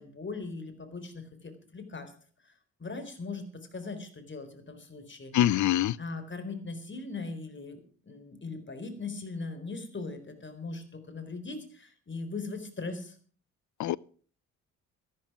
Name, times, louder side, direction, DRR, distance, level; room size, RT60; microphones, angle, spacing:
voice 1, 0.0-2.1 2.8-5.3 6.0-13.1, left 3 dB, 30° left, 4.1 m, -39 dB
voice 2, 5.3-6.0 13.8-14.0, left 12 dB, 50° left, 0.6 m, -24 dB
13.0 x 12.0 x 6.0 m
hypercardioid pair, 50°, 39 cm